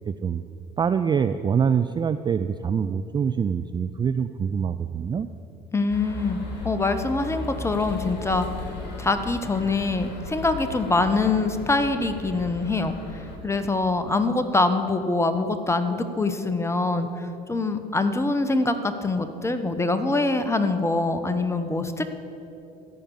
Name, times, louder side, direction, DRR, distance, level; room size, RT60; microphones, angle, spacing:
voice 1, 0.1-0.4 0.8-5.3, right 7 dB, 20° right, 11 dB, 0.3 m, -25 dB
voice 2, 5.7-6.4 6.6-8.5 9.0-12.9 13.4-22.0, left 3 dB, 10° left, 9 dB, 1.0 m, -24 dB
sound 1, 5.9-13.4, left 3 dB, 55° left, 2.6 m, -36 dB
13.5 x 5.2 x 8.5 m, 2.9 s
hypercardioid pair, 70°, 21 cm